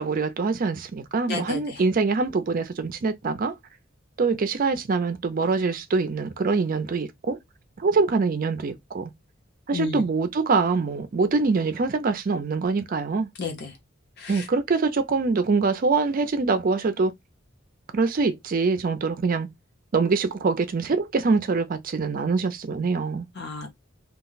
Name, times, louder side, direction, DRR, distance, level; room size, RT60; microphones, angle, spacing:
voice 1, 0.0-3.5 4.2-7.4 7.8-9.1 9.7-13.3 14.3-17.1 17.9-19.5 19.9-23.2, right 4 dB, 45° right, 0.4 m, -24 dB
voice 2, 1.3-1.8 9.7-10.0 13.4-13.7 14.2-14.4 23.4-23.7, left 4 dB, 60° left, 0.8 m, -32 dB
2.3 x 2.1 x 3.8 m
head